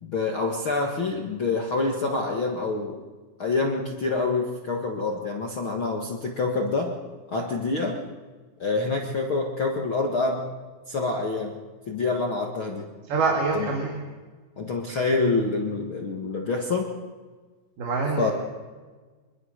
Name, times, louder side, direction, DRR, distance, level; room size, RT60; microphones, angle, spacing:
voice 1, 0.0-3.0 3.4-6.9 7.3-8.0 8.6-10.4 10.9-11.6 11.9-12.9 13.5-13.7 14.6-16.9 18.2-18.3, left 3 dB, 60° left, 1 dB, 1.3 m, -26 dB
voice 2, 13.1-14.0 17.8-18.3, right 4 dB, 60° right, 0 dB, 4.2 m, -25 dB
24.5 x 21.5 x 6.6 m, 1.4 s
omnidirectional pair, 5.1 m